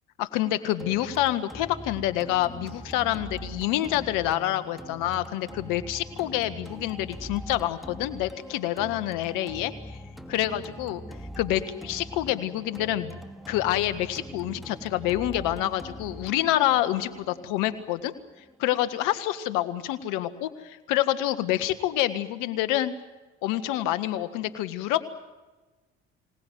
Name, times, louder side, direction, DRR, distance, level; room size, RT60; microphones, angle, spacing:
voice 1, 0.2-10.0 10.3-11.0 11.4-13.2 13.5-18.1 18.6-22.9 23.4-25.0, left 13 dB, 80° left, 12 dB, 1.7 m, -27 dB
sound 1, 0.8-18.8, equal, ahead, 2.4 m, -42 dB
25.5 x 18.5 x 9.3 m, 1.2 s
supercardioid pair, 65°, 31 cm